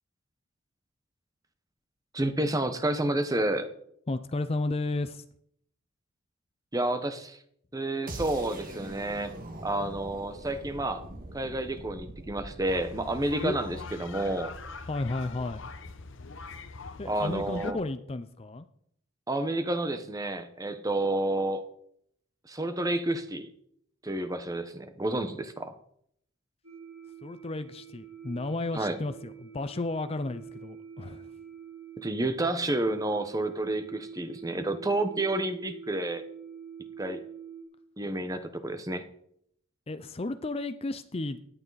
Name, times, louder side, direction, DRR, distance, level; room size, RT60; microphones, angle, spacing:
voice 1, 2.1-3.7 6.7-7.4 7.7-9.3 9.6-11.0 11.3-14.5 17.0-17.8 19.3-21.6 22.5-23.5 24.0-25.7 28.7-29.0 32.0-36.2 37.0-37.2 38.0-39.0, right 1 dB, 15° right, 9 dB, 1.0 m, -30 dB
voice 2, 4.1-5.2 13.4-13.6 14.9-15.6 17.0-18.7 27.2-31.3 39.9-41.4, left 2 dB, 25° left, 11 dB, 0.5 m, -33 dB
sound 1, 8.1-14.0, right 1 dB, 40° right, 1.8 m, -43 dB
sound 2, 12.6-17.7, left 4 dB, 60° left, 0.9 m, -43 dB
sound 3, 26.6-37.6, right 7 dB, 85° right, 4.6 m, -46 dB
16.5 x 11.0 x 4.1 m, 0.70 s
head